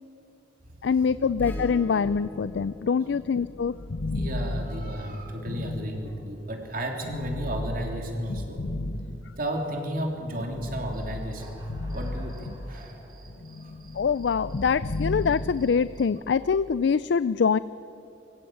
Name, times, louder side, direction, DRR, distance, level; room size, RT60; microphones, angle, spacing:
voice 1, 0.8-3.7 13.9-17.6, left 6 dB, 70° left, 16 dB, 0.4 m, -24 dB
sound 1, 1.4-6.5 7.0-9.7 10.2-13.0 13.3-16.0, left 2 dB, 85° left, 0.9 m, -35 dB
Acoustic guitar / Strum, 1.4-6.0 7.9-8.0, left 1 dB, 10° left, 2.7 m, -46 dB
voice 2, 4.1-8.6 9.4-11.6 11.9-12.9 13.6-13.7, right 1 dB, 50° right, 2 dB, 3.3 m, -33 dB
Human voice / Cricket, 10.9-16.1, right 2 dB, 25° right, 3.6 m, -53 dB
24.5 x 15.5 x 8.7 m, 2.8 s
head